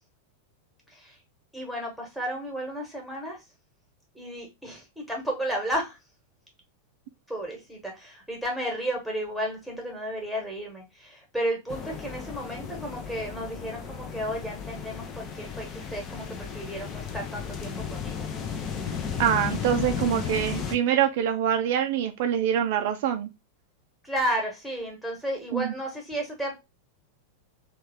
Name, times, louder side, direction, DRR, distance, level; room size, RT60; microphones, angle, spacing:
voice 1, 1.5-3.4 4.1-6.0 7.3-18.3 24.0-26.5, right 1 dB, ahead, 1.2 m, -33 dB
sound 1, 11.7-20.8, left 6 dB, 30° left, 0.6 m, -34 dB
voice 2, 19.2-23.3 25.5-25.7, right 9 dB, 50° right, 0.4 m, -25 dB
3.2 x 2.4 x 3.4 m
figure-of-eight pair, 90°, 0 cm